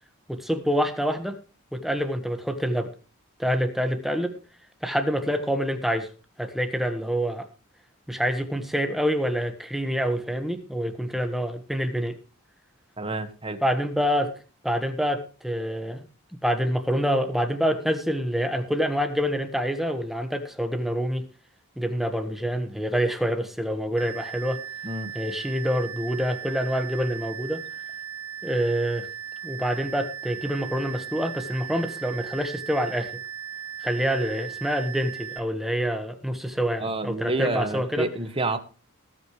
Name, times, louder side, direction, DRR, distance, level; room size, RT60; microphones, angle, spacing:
voice 1, 0.3-1.4 1.7-2.9 3.4-4.3 4.8-6.1 6.4-7.4 8.1-12.2 13.6-14.4 14.6-16.0 16.4-21.2 21.8-24.6 25.1-27.6 28.4-29.1 29.4-33.2 33.8-38.1, equal, ahead, 7 dB, 1.4 m, -26 dB
voice 2, 13.0-13.6 24.8-25.1 36.8-38.6, right 2 dB, 25° right, 9 dB, 1.6 m, -28 dB
sound 1, 24.0-35.4, right 8 dB, 85° right, 1.5 m, -37 dB
20.0 x 9.2 x 3.2 m, 0.35 s
head